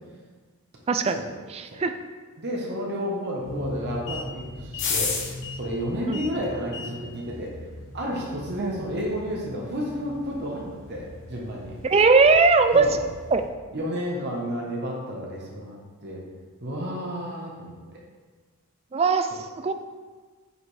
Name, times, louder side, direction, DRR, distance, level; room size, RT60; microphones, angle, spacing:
voice 1, 0.9-1.2 1.5-2.0 6.1-6.2 8.6-8.8 11.8-12.9 13.3-13.4 18.9-19.7, right 4 dB, 25° right, 8 dB, 0.3 m, -20 dB
voice 2, 2.4-5.1 5.5-7.5 7.9-11.7 12.7-13.0 13.7-16.2 16.6-18.0 19.3-19.4, equal, 50° right, -2 dB, 1.1 m, -31 dB
sound 1, 3.4-13.4, left 3 dB, 55° left, 1.0 m, -36 dB
8.0 x 4.9 x 3.3 m, 1.4 s
head